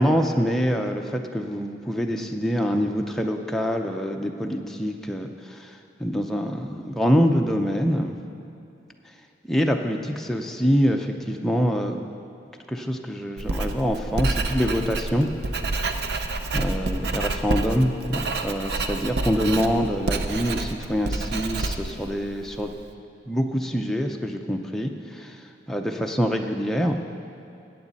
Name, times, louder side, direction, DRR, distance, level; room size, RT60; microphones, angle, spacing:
voice 1, 0.0-5.7 6.0-8.2 9.5-12.0 12.7-15.3 16.5-22.7 23.3-25.4 25.7-27.0, equal, ahead, 2 dB, 0.5 m, -25 dB
Writing, 13.4-22.8, right 2 dB, 70° right, 0.6 m, -28 dB
14.5 x 8.8 x 4.1 m, 2.7 s
head